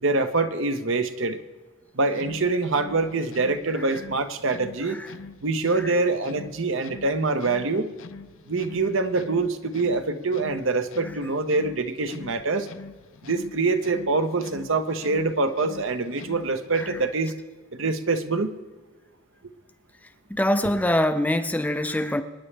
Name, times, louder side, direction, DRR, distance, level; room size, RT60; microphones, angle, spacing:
voice 1, 0.0-1.4 1.9-5.0 5.4-7.9 8.5-12.7 13.2-17.3 17.7-18.6, right 3 dB, 65° right, 0.8 m, -25 dB
sound 1, 2.1-17.3, left 4 dB, 70° left, 0.6 m, -44 dB
voice 2, 20.3-22.2, left 1 dB, 5° left, 0.4 m, -25 dB
26.0 x 9.9 x 3.3 m
head